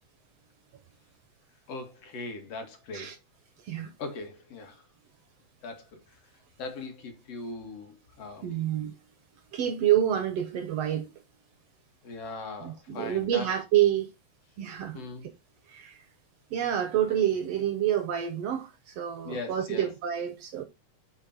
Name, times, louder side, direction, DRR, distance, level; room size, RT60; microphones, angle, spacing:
voice 1, 1.7-3.1 4.0-4.8 5.6-6.0 6.6-8.7 12.0-13.5 14.9-15.3 19.2-19.9, left 3 dB, 55° left, 2.8 m, -40 dB
voice 2, 8.4-8.9 9.5-11.1 12.6-14.1 14.6-15.0 15.7-16.0 16.5-20.6, right 11 dB, 65° right, 1.8 m, -28 dB
8.7 x 5.4 x 4.2 m
omnidirectional pair, 3.5 m